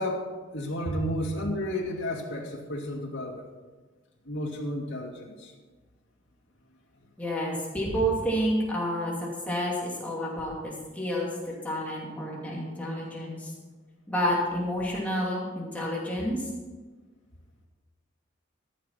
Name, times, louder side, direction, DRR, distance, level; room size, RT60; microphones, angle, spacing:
voice 1, 0.0-3.4 4.3-5.5 12.6-12.8 13.2-13.4 16.2-16.3, left 1 dB, 85° left, -1 dB, 2.2 m, -33 dB
voice 2, 7.2-11.3 11.6-13.5 14.1-16.4, equal, 10° left, -4 dB, 2.6 m, -29 dB
14.0 x 6.9 x 5.8 m, 1.3 s
head